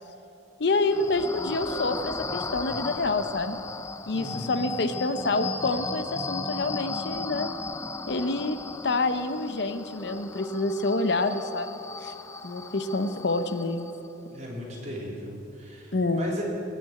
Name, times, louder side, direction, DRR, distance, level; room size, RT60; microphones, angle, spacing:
voice 1, 0.6-3.6 4.1-7.5 8.1-8.6 8.8-12.1 12.4-13.9 15.9-16.2, left 2 dB, 60° left, 10 dB, 0.7 m, -27 dB
sound 1, 0.7-14.1, left 3 dB, 15° left, 0.4 m, -36 dB
voice 2, 4.1-4.6 14.3-16.4, left 1 dB, 35° right, -3 dB, 3.2 m, -37 dB
19.0 x 6.7 x 8.8 m, 2.8 s
head